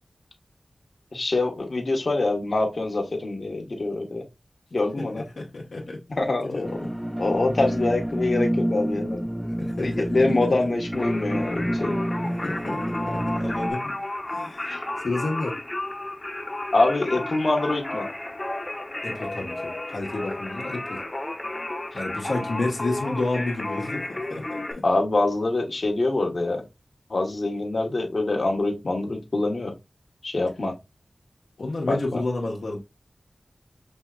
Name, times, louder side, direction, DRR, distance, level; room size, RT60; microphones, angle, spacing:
voice 1, 1.1-4.2 4.7-5.2 6.1-6.8 7.2-9.2 9.8-12.0 14.7-14.8 16.7-18.1 24.8-26.6 27.1-29.7 30.2-30.8 31.9-32.2, left 2 dB, 60° left, 1.0 m, -25 dB
voice 2, 5.0-6.0 6.4-6.9 9.4-10.2 10.4-10.5 12.1-14.0 14.3-14.7 15.0-15.6 19.0-21.0 21.9-24.8 31.6-32.8, left 2 dB, 90° left, 1.0 m, -31 dB
sound 1, 6.6-13.7, equal, 5° right, 0.3 m, -28 dB
Singing, 10.9-24.7, left 2 dB, 30° left, 0.8 m, -32 dB
5.3 x 2.8 x 2.3 m
wide cardioid pair, 80°, 0 cm